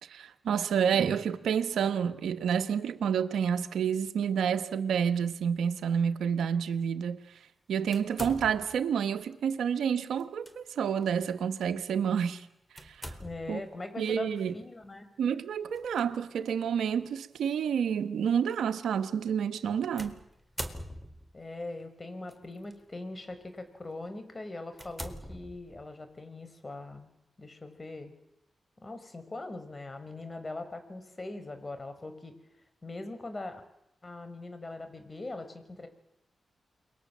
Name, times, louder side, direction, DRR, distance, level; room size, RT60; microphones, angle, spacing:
voice 1, 0.1-7.2 7.7-12.4 12.8-13.1 13.5-13.6 14.0-14.5 15.2-20.2, right 7 dB, 85° right, 1.5 m, -29 dB
sound 1, 7.9-8.9 10.2-10.5 11.0-11.1 12.8-13.6 15.7-16.0 16.8-16.9 20.0-21.4 22.3-22.7 23.3-23.5 24.0-24.1 24.7-26.0, equal, ahead, 4.2 m, -42 dB
voice 2, 13.2-15.1 21.3-27.1 27.4-28.1 28.8-32.3 32.8-33.6 34.0-35.9, left 2 dB, 35° left, 6.2 m, -41 dB
29.0 x 22.5 x 7.6 m
supercardioid pair, 45°, 0 cm